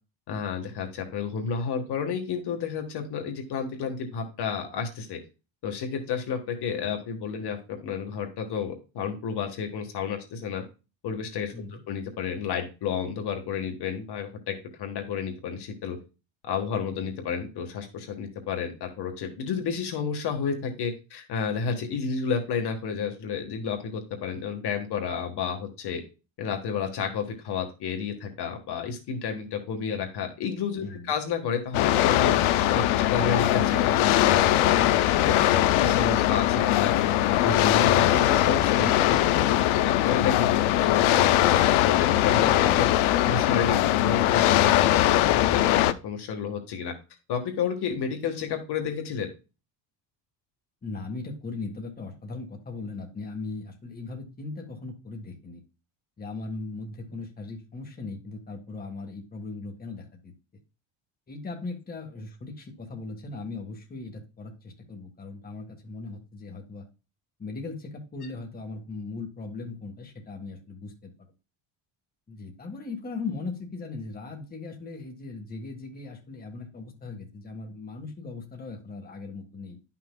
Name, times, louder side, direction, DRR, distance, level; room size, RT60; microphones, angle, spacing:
voice 1, 0.3-5.2 5.6-10.6 11.0-16.0 16.5-26.0 26.4-36.9 37.3-46.9 47.3-49.3, left 6 dB, 55° left, 4 dB, 1.4 m, -31 dB
voice 2, 11.5-11.8 30.8-31.1 32.8-33.1 50.8-55.6 56.2-60.3 61.3-66.8 67.4-71.1 72.3-79.8, left 3 dB, 20° left, 1 dB, 1.5 m, -38 dB
sound 1, 31.7-45.9, left 13 dB, 80° left, 0.7 m, -21 dB
11.0 x 5.9 x 2.2 m, 0.30 s
cardioid pair, 160°, 48 cm